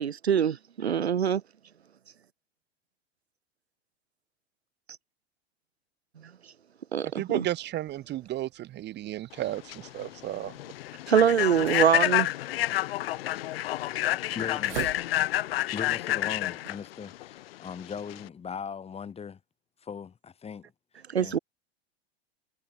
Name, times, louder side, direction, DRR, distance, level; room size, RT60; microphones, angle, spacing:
voice 1, 0.0-1.4 6.9-7.4 11.1-12.3 21.1-21.4, right 8 dB, 85° right, 0.7 m, -24 dB
voice 2, 7.2-10.5, right 14 dB, 35° right, 1.4 m, -33 dB
sound 1, 7.9-15.6, right 16 dB, 65° right, 6.9 m, -45 dB
Human voice / Train, 9.4-18.3, left 15 dB, 70° left, 0.5 m, -29 dB
voice 3, 14.3-14.9 15.7-19.4 19.8-20.7 21.2-21.4, left 6 dB, 20° left, 1.8 m, -39 dB
figure-of-eight pair, 90°, 31 cm